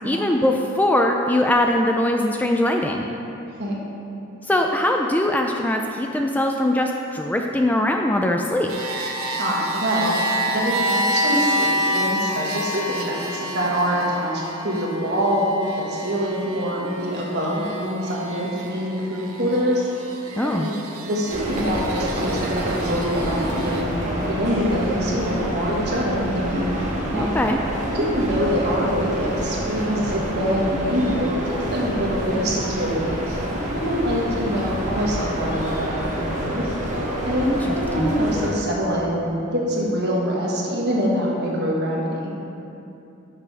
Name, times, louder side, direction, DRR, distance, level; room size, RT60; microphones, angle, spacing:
voice 1, 0.0-3.1 4.5-8.7 20.4-20.7 27.1-27.6 37.4-37.6 37.9-38.1, left 1 dB, 10° left, 2 dB, 0.3 m, -21 dB
sound 1, 8.7-23.8, equal, 80° right, 0.9 m, -28 dB
voice 2, 9.4-10.2 10.5-19.9 20.4-20.7 21.0-26.7 27.1-27.4 27.9-33.4 33.7-36.7 37.2-42.3, equal, 55° right, -4 dB, 1.6 m, -25 dB
sound 2, 21.3-38.5, equal, 35° right, 1.4 m, -27 dB
11.5 x 6.1 x 3.4 m, 2.8 s
head